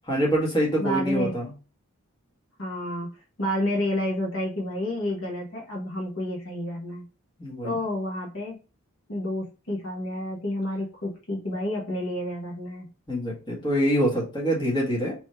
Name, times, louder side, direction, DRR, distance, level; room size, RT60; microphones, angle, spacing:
voice 1, 0.1-1.5 7.4-7.8 13.1-15.1, equal, 20° left, -4 dB, 1.6 m, -25 dB
voice 2, 0.8-1.3 2.6-7.0 7.6-8.6 9.1-12.9, left 1 dB, 60° left, -2 dB, 1.3 m, -30 dB
3.8 x 3.0 x 4.3 m, 0.33 s
head